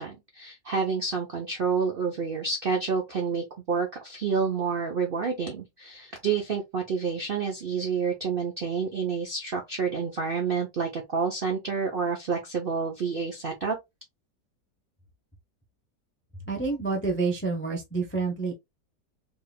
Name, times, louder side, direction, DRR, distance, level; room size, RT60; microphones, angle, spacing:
voice 1, 0.0-13.8, right 5 dB, 60° right, 0.5 m, -29 dB
voice 2, 16.5-18.5, right 4 dB, 20° left, 0.3 m, -28 dB
3.4 x 3.4 x 2.2 m
omnidirectional pair, 1.9 m